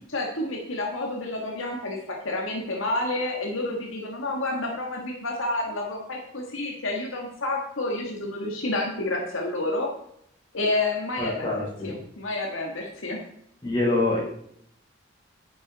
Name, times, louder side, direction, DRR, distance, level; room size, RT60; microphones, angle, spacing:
voice 1, 0.1-9.9 10.5-13.2, left 2 dB, 80° left, 0 dB, 1.7 m, -29 dB
voice 2, 11.2-12.0 13.6-14.2, left 2 dB, 25° left, -6 dB, 4.6 m, -25 dB
10.0 x 7.1 x 4.2 m, 0.70 s
head